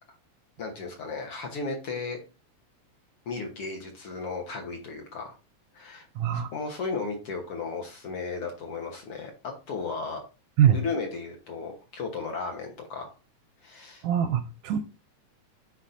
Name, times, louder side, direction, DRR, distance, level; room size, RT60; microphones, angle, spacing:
voice 1, 0.6-2.2 3.3-5.4 5.7-6.1 6.3-10.2 10.7-13.1 13.6-14.0, left 4 dB, 55° left, 1.8 m, -35 dB
voice 2, 6.2-6.5 10.6-10.8 14.0-14.8, right 9 dB, 80° right, 1.7 m, -23 dB
10.0 x 4.1 x 2.6 m
omnidirectional pair, 3.6 m